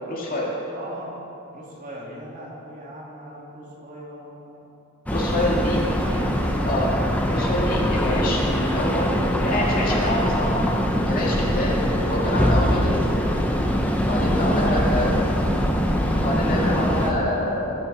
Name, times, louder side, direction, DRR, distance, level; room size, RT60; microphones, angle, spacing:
voice 1, 0.1-0.5 5.1-5.8 6.7-6.9 7.3-9.2 9.4-10.7 11.1-13.0 14.0-15.1 16.1-17.8, left 1 dB, 45° left, -3 dB, 2.4 m, -26 dB
voice 2, 0.7-1.2 1.5-4.6 5.4-6.6 14.4-15.6, equal, 40° right, -4 dB, 2.8 m, -38 dB
sound 1, 5.1-17.1, equal, 5° left, 1.0 m, -22 dB
20.5 x 7.0 x 5.6 m, 2.9 s
head